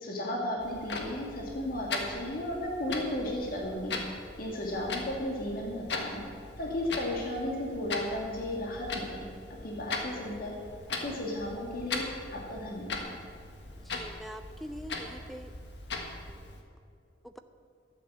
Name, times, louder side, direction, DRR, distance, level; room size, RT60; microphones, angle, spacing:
voice 1, 0.0-3.9 4.4-6.2 6.6-9.3 9.6-10.5 11.0-12.0 12.3-13.1, left 1 dB, 55° left, -2 dB, 2.1 m, -34 dB
Clock, 0.6-16.6, left 3 dB, 75° left, 1.6 m, -40 dB
voice 2, 13.8-15.5 17.2-17.4, equal, ahead, 9 dB, 0.5 m, -44 dB
12.0 x 9.0 x 7.3 m, 2.3 s
head